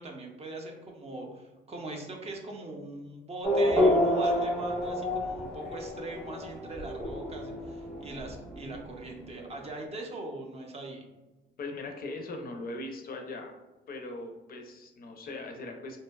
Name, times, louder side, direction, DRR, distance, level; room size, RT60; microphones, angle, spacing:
voice 1, 0.0-11.0, right 2 dB, 30° right, 1 dB, 0.5 m, -41 dB
Race car auto racing / Accelerating revving vroom, 3.4-9.5, left 1 dB, 5° left, 0.7 m, -29 dB
voice 2, 11.6-13.5 13.9-16.0, left 2 dB, 50° left, 3 dB, 0.4 m, -39 dB
2.6 x 2.1 x 2.2 m, 1.1 s
cardioid pair, 90°, 20 cm